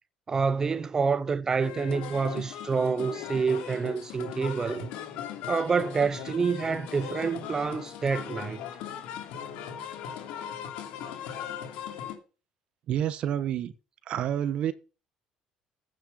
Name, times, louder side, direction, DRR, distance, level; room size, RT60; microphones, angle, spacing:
voice 1, 0.3-4.9 5.4-8.6, right 5 dB, 30° right, 0.6 m, -27 dB
sound 1, 1.6-12.2, left 9 dB, 80° left, 2.8 m, -38 dB
voice 2, 12.9-13.7 14.1-14.7, right 10 dB, 60° right, 1.1 m, -28 dB
9.2 x 6.7 x 6.9 m
supercardioid pair, 95°, 2 cm